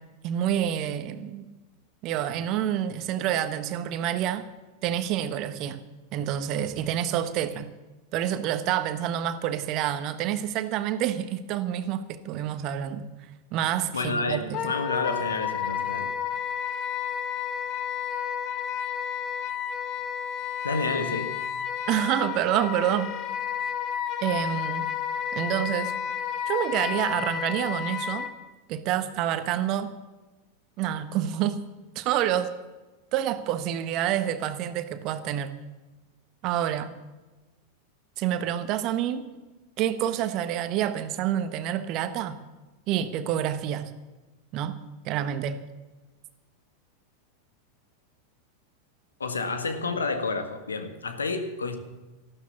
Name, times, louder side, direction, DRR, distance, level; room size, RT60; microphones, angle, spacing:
voice 1, 0.2-1.5 2.0-4.4 4.8-5.8 6.1-7.7 8.1-13.1 13.5-14.7 21.9-23.1 24.2-24.9 25.3-25.9 26.5-28.3 28.7-29.9 30.8-31.6 31.9-32.5 33.1-35.5 36.4-36.9 38.2-39.3 39.8-42.4 42.9-43.9 44.5-44.8 45.0-45.6, right 11 dB, 40° right, 1.3 m, -28 dB
voice 2, 13.9-16.2 20.6-21.4 49.2-51.8, left 3 dB, 80° left, 1.7 m, -29 dB
Wind instrument woodwind instrument, 14.5-28.3, left 8 dB, 40° left, 1.3 m, -31 dB
14.0 x 12.5 x 7.1 m
figure-of-eight pair, 90°, 0 cm